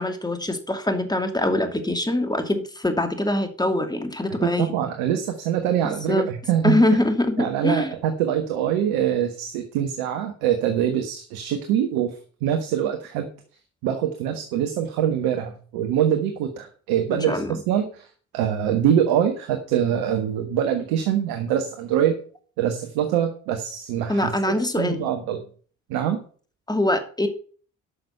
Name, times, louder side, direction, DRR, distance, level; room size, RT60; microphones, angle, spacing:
voice 1, 0.0-4.7 5.8-6.3 6.6-7.9 17.1-17.6 24.1-25.1 26.7-27.3, left 1 dB, 10° left, 7 dB, 2.5 m, -23 dB
voice 2, 4.4-6.8 7.4-12.2 12.4-13.3 13.8-18.1 18.3-22.2 22.6-24.3 24.8-25.4 25.9-26.2, right 9 dB, 75° right, 5 dB, 1.4 m, -24 dB
11.5 x 6.5 x 5.7 m, 0.42 s
hypercardioid pair, 45°, 38 cm